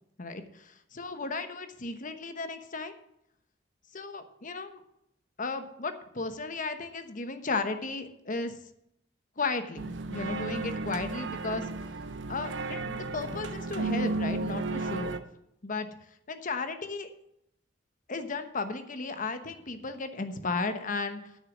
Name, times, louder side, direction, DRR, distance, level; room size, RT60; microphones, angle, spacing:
voice 1, 0.2-2.9 3.9-4.8 5.4-8.5 9.4-9.8 10.1-11.7 12.3-15.2 15.6-15.9 16.3-17.1 18.1-21.2, left 3 dB, 45° left, 9 dB, 1.1 m, -34 dB
sound 1, 9.8-15.2, right 3 dB, 80° right, 0.9 m, -33 dB
9.9 x 6.6 x 7.3 m, 0.77 s
head